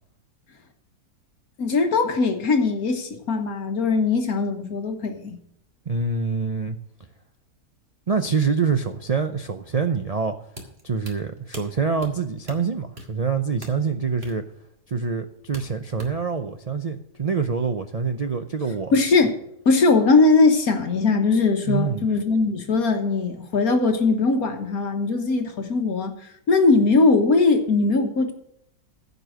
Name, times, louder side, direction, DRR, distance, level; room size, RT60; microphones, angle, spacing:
voice 1, 1.6-5.4 18.9-19.4 19.7-28.3, left 3 dB, 70° left, 5 dB, 1.8 m, -20 dB
voice 2, 5.9-6.8 8.1-10.3 10.8-14.4 14.9-18.9 21.6-22.1, right 5 dB, 60° right, 7 dB, 0.3 m, -25 dB
sound 1, 10.5-16.4, equal, 30° right, 2.4 m, -43 dB
15.0 x 5.4 x 6.3 m, 0.75 s
omnidirectional pair, 1.6 m